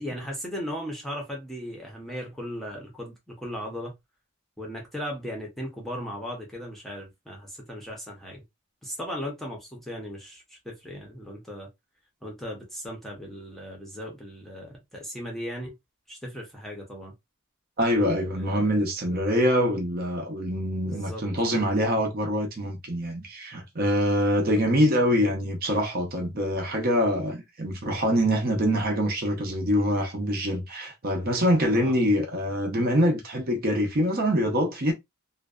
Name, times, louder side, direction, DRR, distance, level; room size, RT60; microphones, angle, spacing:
voice 1, 0.0-3.9 4.6-8.4 8.8-11.7 12.2-15.7 16.1-17.1 18.3-18.8 20.8-21.2 31.7-32.0, equal, ahead, 0.7 m, -37 dB
voice 2, 17.8-34.9, equal, 45° right, 0.6 m, -24 dB
2.5 x 2.2 x 2.3 m
head